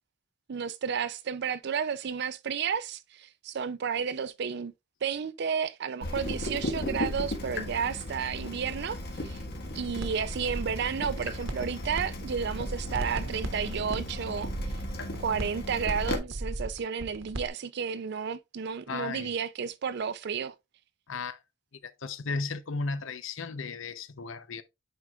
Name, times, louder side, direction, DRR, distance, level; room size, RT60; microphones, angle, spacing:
voice 1, 0.5-4.7 5.0-9.4 9.7-14.5 15.2-20.5, right 6 dB, 60° right, 0.4 m, -32 dB
Water tap faucet / Drip, 6.0-16.2, left 1 dB, 55° left, 1.6 m, -36 dB
sound 1, 10.0-10.1 10.4-12.0 12.3-17.5, right 1 dB, 75° right, 1.1 m, -36 dB
voice 2, 18.9-19.3 21.1-21.4 21.8-24.6, left 4 dB, 85° left, 0.7 m, -35 dB
9.6 x 4.6 x 2.4 m
head